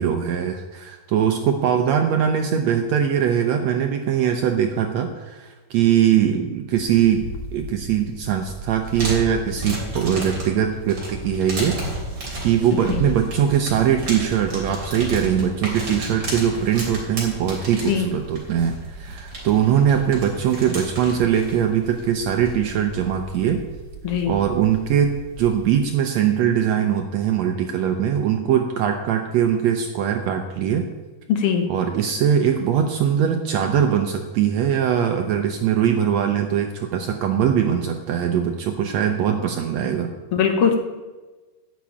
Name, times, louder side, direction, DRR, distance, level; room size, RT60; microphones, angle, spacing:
voice 1, 0.0-11.8 12.4-23.6 24.3-30.8 31.7-40.1, right 9 dB, 80° right, 5 dB, 1.6 m, -21 dB
sound 1, 6.7-25.8, right 2 dB, 35° right, 3.7 m, -33 dB
voice 2, 31.3-31.6 40.3-40.7, left 7 dB, 65° left, 4 dB, 1.5 m, -20 dB
10.5 x 6.0 x 8.6 m, 1.2 s
omnidirectional pair, 3.9 m